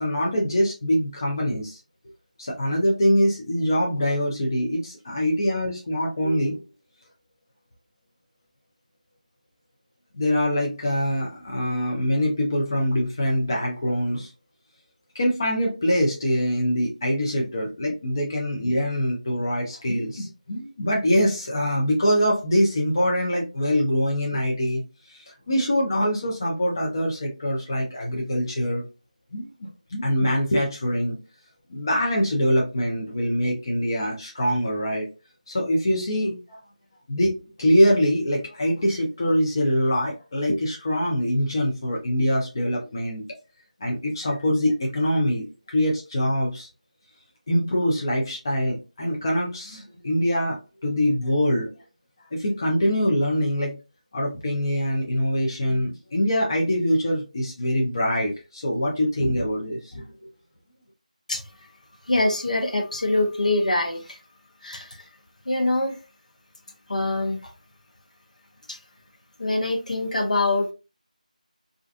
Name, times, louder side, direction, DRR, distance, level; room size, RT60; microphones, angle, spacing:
voice 1, 0.0-1.8 2.4-6.6 10.1-14.3 15.1-28.8 29.3-29.5 29.9-31.2 31.7-35.1 35.5-36.6 37.1-43.2 43.8-46.7 47.5-51.7 52.3-53.8 54.1-60.1, equal, 30° left, -2 dB, 0.6 m, -24 dB
voice 2, 61.3-61.7 62.0-64.2 64.6-65.1 65.4-66.0 66.9-67.5 68.7-68.8 69.4-70.7, left 2 dB, 65° left, 4 dB, 0.8 m, -24 dB
2.4 x 2.3 x 2.4 m, 0.30 s
figure-of-eight pair, 170°, 4 cm